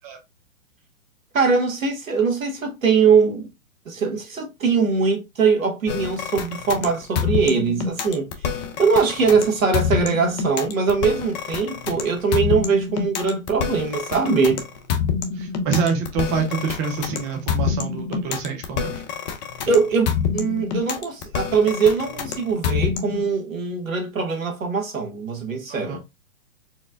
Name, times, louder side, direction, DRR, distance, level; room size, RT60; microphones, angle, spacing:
voice 1, 1.3-3.5 3.8-8.5 8.8-14.6 19.7-20.1 20.3-26.0, right 5 dB, 80° right, 1.3 m, -21 dB
sound 1, 5.9-23.3, left 7 dB, 35° left, 0.6 m, -26 dB
voice 2, 15.3-19.0 25.7-26.0, right 5 dB, 20° right, 0.5 m, -26 dB
4.3 x 2.1 x 2.4 m
hypercardioid pair, 120°, 40 cm